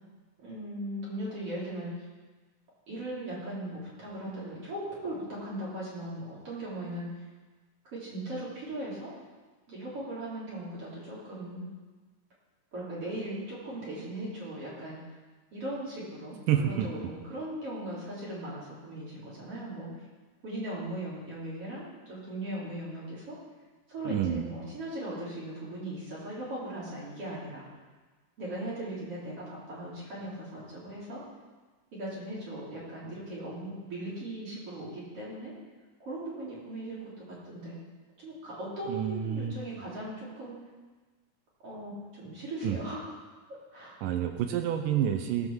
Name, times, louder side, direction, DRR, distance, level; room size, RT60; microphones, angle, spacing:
voice 1, 0.4-1.9 2.9-7.1 7.9-9.1 9.7-11.7 12.7-15.0 15.5-19.9 20.4-23.4 23.9-27.7 28.4-31.2 31.9-35.5 36.0-37.8 38.2-40.5 41.6-43.1 43.7-44.0, right 1 dB, 45° right, -7 dB, 4.3 m, -38 dB
voice 2, 16.5-16.9 24.1-24.5 38.9-39.5 42.6-42.8 44.0-45.5, right 10 dB, 80° right, 6 dB, 2.4 m, -28 dB
17.5 x 6.1 x 7.2 m, 1.3 s
omnidirectional pair, 3.9 m